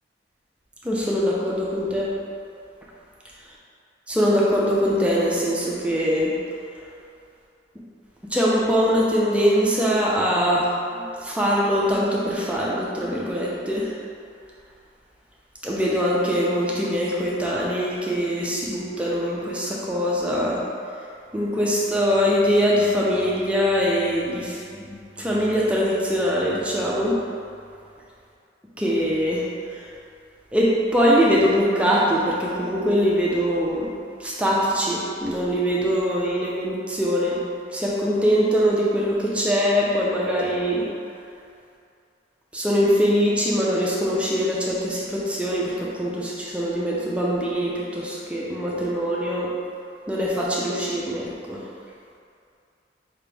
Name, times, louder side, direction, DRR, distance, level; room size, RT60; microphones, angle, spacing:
voice 1, 0.8-2.1 4.1-6.3 8.3-13.9 15.6-20.6 21.3-27.2 28.8-29.4 29.7-29.9 30.5-33.9 34.2-37.4 37.7-40.8 42.5-49.5 50.1-51.6, equal, 5° right, -5 dB, 0.5 m, -22 dB
4.9 x 2.9 x 3.4 m, 2.4 s
head